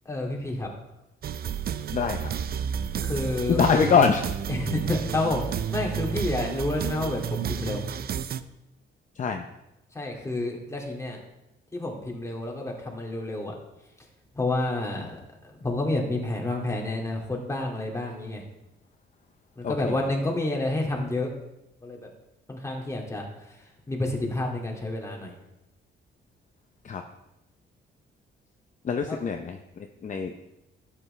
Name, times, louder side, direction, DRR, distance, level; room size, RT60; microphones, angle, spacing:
voice 1, 0.1-0.7 3.0-3.9 4.5-5.4 5.7-7.8 9.9-11.2 11.7-13.5 14.3-18.4 19.6-21.3 21.8-22.1 22.5-25.3 29.1-29.2, left 2 dB, 15° left, -1 dB, 2.4 m, -29 dB
sound 1, 1.2-8.4, right 8 dB, 50° right, 0.6 m, -31 dB
voice 2, 1.9-2.3 3.5-4.2 9.2-9.4 19.6-19.7 26.8-27.0 28.8-29.6 30.0-30.4, left 6 dB, 40° left, 5 dB, 0.8 m, -23 dB
12.0 x 8.1 x 3.3 m, 0.91 s
cardioid pair, 90°, 20 cm